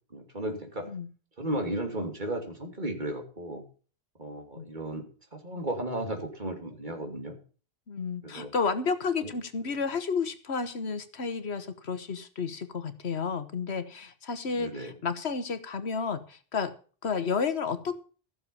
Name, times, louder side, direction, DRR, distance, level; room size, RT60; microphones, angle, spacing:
voice 1, 0.1-0.9 1.4-3.6 4.2-5.0 5.3-7.4 8.2-8.5 9.2-9.3 14.5-14.9, right 1 dB, 50° right, 4 dB, 3.1 m, -34 dB
voice 2, 7.9-16.7 17.0-18.0, left 5 dB, 90° left, 11 dB, 1.6 m, -31 dB
15.0 x 6.9 x 7.0 m, 0.39 s
omnidirectional pair, 1.1 m